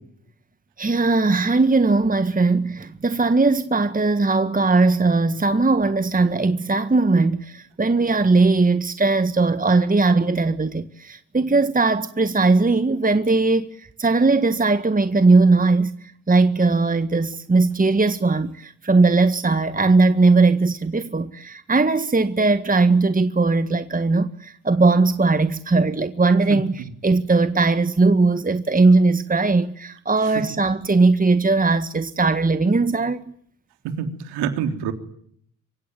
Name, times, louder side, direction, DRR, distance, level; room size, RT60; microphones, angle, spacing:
voice 1, 0.8-33.3, right 3 dB, 20° right, 1.8 m, -19 dB
voice 2, 33.8-34.9, right 7 dB, 75° right, 3.6 m, -26 dB
26.0 x 25.0 x 9.2 m
hypercardioid pair, 40°, 40 cm